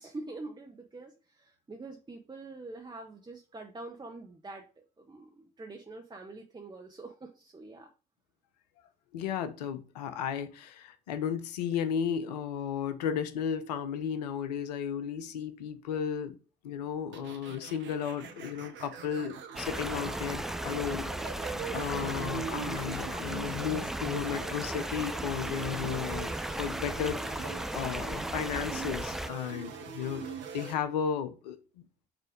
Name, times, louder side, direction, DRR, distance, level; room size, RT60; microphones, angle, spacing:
voice 1, 0.0-7.9, right 2 dB, 20° right, 1.3 m, -45 dB
voice 2, 9.1-16.4 16.6-21.5 21.7-27.5 27.7-31.8, left 8 dB, 85° left, 0.7 m, -34 dB
sound 1, 17.1-30.7, right 7 dB, 65° right, 1.1 m, -42 dB
sound 2, 19.6-29.3, right 1 dB, ahead, 0.3 m, -36 dB
6.1 x 3.3 x 5.2 m
hypercardioid pair, 50°, 20 cm